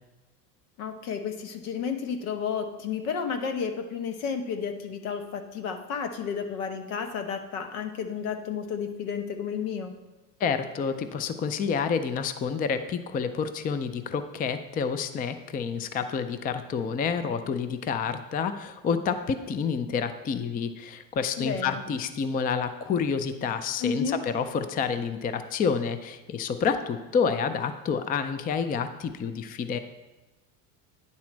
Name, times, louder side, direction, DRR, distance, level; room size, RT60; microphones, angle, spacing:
voice 1, 0.8-9.9 21.4-21.8 23.8-24.2, left 6 dB, 85° left, 7 dB, 1.1 m, -32 dB
voice 2, 10.4-29.8, left 6 dB, 25° left, 10 dB, 0.4 m, -29 dB
9.6 x 4.2 x 6.0 m, 1.1 s
cardioid pair, 125°, 41 cm